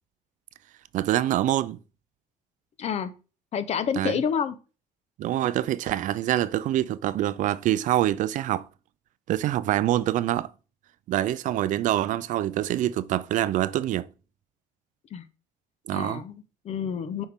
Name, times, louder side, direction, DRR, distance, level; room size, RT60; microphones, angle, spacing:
voice 1, 0.9-1.8 4.0-4.2 5.2-8.7 9.3-10.5 11.1-14.1 15.9-16.2, right 13 dB, 60° right, 0.4 m, -25 dB
voice 2, 2.8-3.1 3.5-4.6 15.1-15.2 15.9-17.2, left 7 dB, 45° left, 0.8 m, -29 dB
7.1 x 5.2 x 3.6 m
cardioid pair, 130°, 15 cm